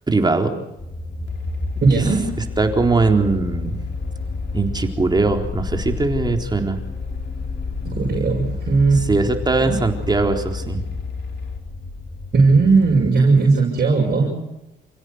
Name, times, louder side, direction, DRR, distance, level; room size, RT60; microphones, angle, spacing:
voice 1, 0.1-0.6 2.6-3.8 4.5-6.8 9.1-10.8, right 3 dB, 20° right, 4 dB, 4.0 m, -20 dB
sound 1, 0.8-13.1, left 1 dB, 30° left, 4.9 m, -34 dB
sound 2, 1.3-11.6, left 5 dB, 65° left, 4.8 m, -31 dB
voice 2, 1.8-2.4 7.8-9.1 9.6-9.8 12.3-14.3, right 4 dB, 50° right, -2 dB, 6.7 m, -17 dB
29.0 x 16.5 x 8.1 m, 0.92 s
cardioid pair, 90°, 20 cm